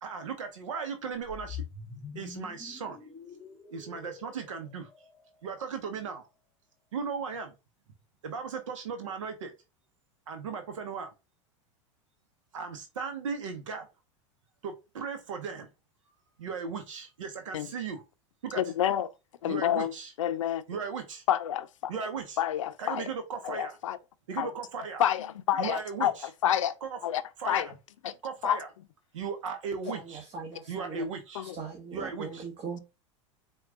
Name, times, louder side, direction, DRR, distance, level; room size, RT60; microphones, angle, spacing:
voice 1, 0.0-1.6 2.1-3.0 3.7-4.9 5.4-6.3 6.9-7.5 8.2-9.5 10.3-11.1 12.5-13.9 14.6-15.7 16.4-18.0 18.4-18.6 19.5-20.1 20.7-21.2 21.9-22.4 22.8-23.8 24.3-25.0 25.6-26.3 26.8-26.9 27.4-27.6 28.2-28.7 29.1-30.2 30.7-31.4 31.9-32.4, right 5 dB, 85° right, 0.7 m, -36 dB
sound 1, 1.1-5.5, left 7 dB, 20° left, 0.9 m, -45 dB
voice 2, 18.5-19.1 19.4-19.9 20.2-20.6 21.3-22.0 22.4-23.1 23.4-24.0 24.4-24.5 25.0-26.7 27.0-27.7 28.4-28.6 29.9-30.0 31.3-31.6, left 11 dB, 85° left, 0.5 m, -29 dB
voice 3, 29.9-31.0 31.4-32.8, right 5 dB, 40° right, 1.2 m, -40 dB
4.5 x 2.3 x 3.6 m
hypercardioid pair, 100°, 16 cm